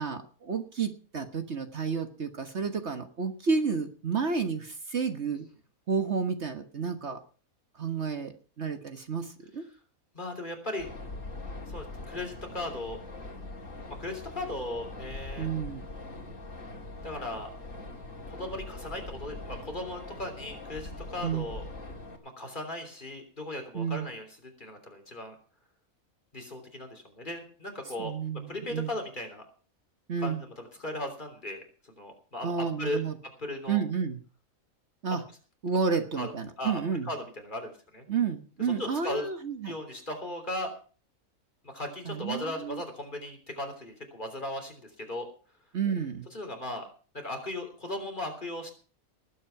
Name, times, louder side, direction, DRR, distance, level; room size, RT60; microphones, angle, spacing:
voice 1, 0.0-5.5 5.9-7.2 7.8-9.7 15.4-15.9 21.2-21.5 23.7-24.1 28.0-28.9 30.1-30.4 32.4-33.1 33.7-34.2 35.0-35.2 35.6-37.1 38.1-39.7 42.1-42.8 45.7-46.3, right 5 dB, 50° right, 7 dB, 1.5 m, -31 dB
voice 2, 10.1-10.9 11.7-13.0 13.9-15.5 17.0-17.5 18.3-21.6 22.2-25.4 26.3-28.1 28.5-29.4 30.2-33.0 33.4-33.8 36.2-36.3 36.6-38.1 38.6-39.3 39.7-40.7 41.6-45.3 46.3-46.9 47.2-48.7, left 1 dB, 35° left, 4 dB, 3.5 m, -37 dB
sound 1, 10.8-22.2, left 2 dB, 60° left, 3.2 m, -42 dB
19.5 x 8.5 x 5.9 m, 0.40 s
omnidirectional pair, 1.5 m